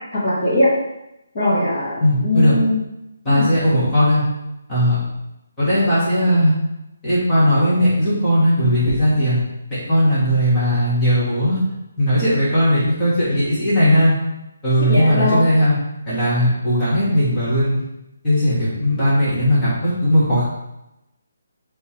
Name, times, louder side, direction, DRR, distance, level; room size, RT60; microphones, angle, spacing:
voice 1, 0.1-0.7 1.3-2.8 3.3-3.5 14.8-15.5, left 1 dB, 30° left, -8 dB, 1.0 m, -20 dB
voice 2, 2.0-2.5 3.2-4.2 4.7-5.0 5.6-6.5 7.0-9.4 9.7-11.6 12.0-14.1 14.6-15.7 16.1-17.8 18.2-20.4, equal, 10° left, -12 dB, 1.1 m, -17 dB
3.5 x 3.1 x 4.2 m, 0.90 s
hypercardioid pair, 180°, 0 cm